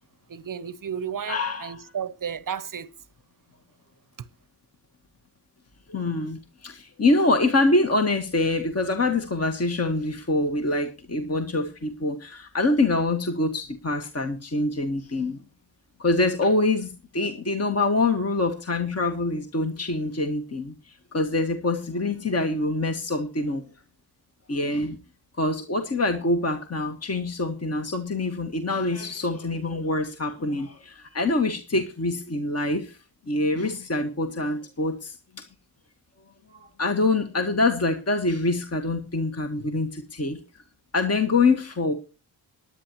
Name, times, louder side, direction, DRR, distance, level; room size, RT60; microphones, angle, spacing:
voice 1, 0.3-2.9, right 8 dB, 45° right, 0.8 m, -33 dB
voice 2, 1.3-1.8 5.9-15.4 16.0-23.6 24.5-25.0 25.4-33.0 33.3-35.4 36.5-40.4 40.9-41.9, left 2 dB, 30° left, 1.6 m, -25 dB
18.5 x 11.0 x 3.0 m
supercardioid pair, 45°, 48 cm